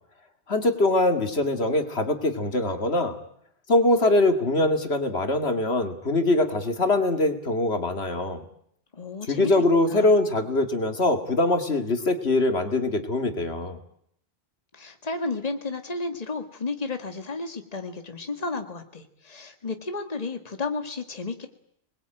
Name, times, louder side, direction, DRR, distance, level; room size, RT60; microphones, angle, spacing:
voice 1, 0.5-3.2 3.7-8.4 9.3-13.8, left 2 dB, 80° left, 7 dB, 2.4 m, -23 dB
voice 2, 8.9-9.6 9.9-10.2 14.7-21.5, left 3 dB, 35° left, 7 dB, 1.9 m, -32 dB
27.0 x 21.0 x 9.0 m, 0.71 s
omnidirectional pair, 1.1 m